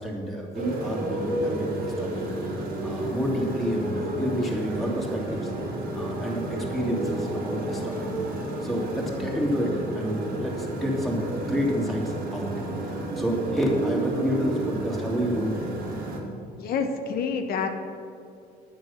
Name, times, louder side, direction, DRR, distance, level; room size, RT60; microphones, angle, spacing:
voice 1, 0.0-2.2 2.5-5.5 5.9-7.9 8.6-12.5 12.8-15.7, equal, ahead, -3 dB, 2.7 m, -29 dB
Motorcycle, 0.5-16.2, right 1 dB, 60° right, 2.5 m, -31 dB
voice 2, 16.6-17.7, left 5 dB, 65° left, 5 dB, 1.2 m, -28 dB
9.7 x 9.6 x 6.4 m, 2.6 s
cardioid pair, 110°, 17 cm